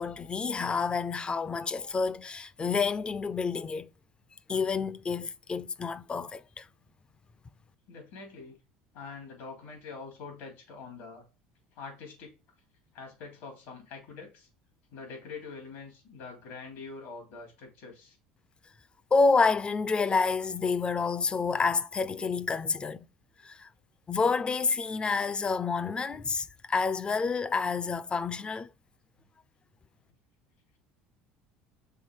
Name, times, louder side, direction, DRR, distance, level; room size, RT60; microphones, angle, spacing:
voice 1, 0.0-3.9 4.5-6.7 19.1-23.1 23.4-23.7 24.1-28.7, left 4 dB, 25° left, 0.4 m, -28 dB
voice 2, 7.9-8.6 8.9-11.2 11.7-12.3 12.9-14.5 14.9-18.2, left 4 dB, 80° left, 3.1 m, -44 dB
5.6 x 3.7 x 4.7 m
supercardioid pair, 95°, 4 cm